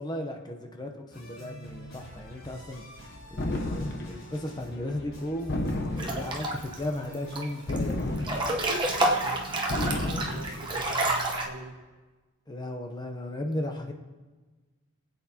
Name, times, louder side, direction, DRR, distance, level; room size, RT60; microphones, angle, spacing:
voice 1, 0.0-2.8 3.3-5.6 6.0-8.3 12.5-13.9, left 1 dB, 20° left, 3 dB, 0.9 m, -35 dB
sound 1, 1.1-11.3, right 1 dB, 70° left, 3.7 m, -47 dB
sound 2, 3.4-4.2 5.5-6.5 7.7-8.7 9.7-10.6, left 1 dB, 50° left, 0.9 m, -31 dB
Breathing / Bathtub (filling or washing) / Splash splatter, 6.0-6.8 7.1-7.8 8.2-11.5, right 1 dB, 20° right, 1.0 m, -28 dB
voice 2, 8.9-11.8, right 2 dB, 75° right, 1 dB, 1.5 m, -44 dB
24.5 x 8.3 x 2.9 m, 1.3 s
head